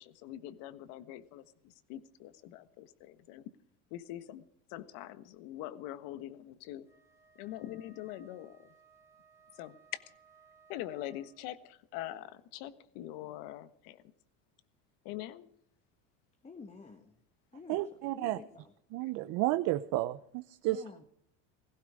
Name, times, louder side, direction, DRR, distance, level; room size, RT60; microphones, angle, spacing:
voice 1, 0.0-3.5 3.9-4.4 4.7-6.9 7.3-8.7 9.5-10.0 10.7-14.0 15.0-15.5, left 13 dB, 70° left, 14 dB, 1.5 m, -43 dB
Wind instrument woodwind instrument, 6.9-11.5, right 6 dB, 10° right, 3.4 m, -63 dB
voice 2, 16.4-17.2 17.5-18.7 20.6-21.1, left 4 dB, 20° left, 5 dB, 1.4 m, -50 dB
voice 3, 17.7-18.4 18.9-20.8, right 16 dB, 60° right, 12 dB, 0.8 m, -32 dB
17.5 x 16.0 x 4.9 m, 0.68 s
supercardioid pair, 115°, 36 cm